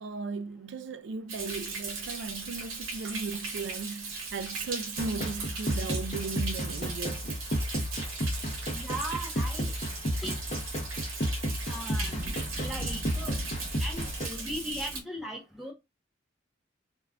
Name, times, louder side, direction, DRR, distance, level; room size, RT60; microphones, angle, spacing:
voice 1, 0.0-7.4, right 4 dB, 60° right, 0.3 m, -37 dB
Thunder, 1.3-15.0, right 3 dB, 90° right, 0.8 m, -38 dB
sound 1, 5.0-14.3, equal, 35° left, 0.7 m, -33 dB
voice 2, 8.7-9.7 10.2-10.4 11.7-12.1 12.6-13.4 13.8-15.7, right 1 dB, ahead, 0.6 m, -38 dB
2.3 x 2.2 x 3.4 m
head